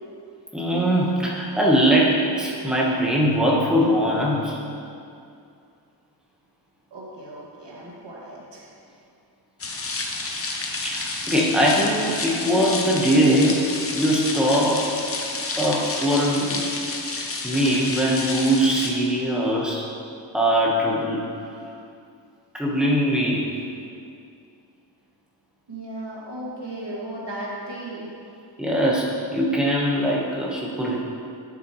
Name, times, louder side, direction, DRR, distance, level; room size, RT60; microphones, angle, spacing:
voice 1, 0.5-4.6 10.8-15.0 15.6-16.7 17.1-19.9 20.3-21.3 22.5-23.5 28.6-31.0, equal, ahead, -4 dB, 1.2 m, -21 dB
voice 2, 6.9-8.7 25.7-28.1, right 1 dB, 70° right, -5 dB, 2.1 m, -36 dB
sound 1, 9.6-18.9, left 3 dB, 30° left, 0.7 m, -30 dB
11.0 x 7.0 x 3.1 m, 2.5 s
wide cardioid pair, 170°, 44 cm